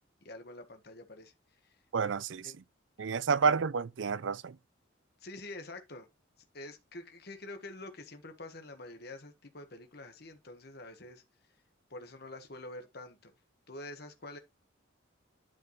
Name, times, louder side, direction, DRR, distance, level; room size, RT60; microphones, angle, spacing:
voice 1, 0.2-1.3 1.6-1.8 2.4-2.6 3.4-3.6 5.2-6.1 6.5-11.2 11.9-13.3 13.7-14.4, left 2 dB, 55° left, 1.5 m, -46 dB
voice 2, 1.9-2.5 3.0-4.6, right 5 dB, 65° right, 0.5 m, -29 dB
11.5 x 4.6 x 3.2 m
head